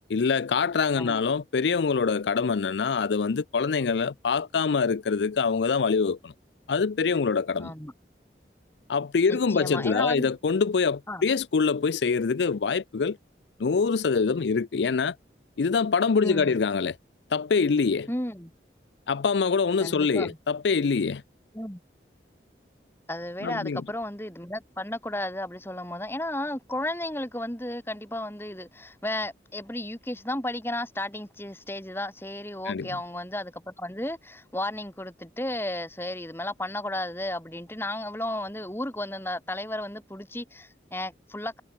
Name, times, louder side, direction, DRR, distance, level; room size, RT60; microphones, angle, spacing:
voice 1, 0.1-6.3 6.7-7.7 8.9-13.2 13.6-15.1 15.6-17.0 17.3-18.1 19.1-21.2 23.4-23.8 32.7-32.9, left 5 dB, 85° left, 0.5 m, -25 dB
voice 2, 7.6-7.9 9.3-10.3 11.1-11.2 16.2-16.5 18.1-18.5 19.8-20.4 21.5-21.8 23.1-41.6, left 1 dB, 15° left, 2.6 m, -33 dB
head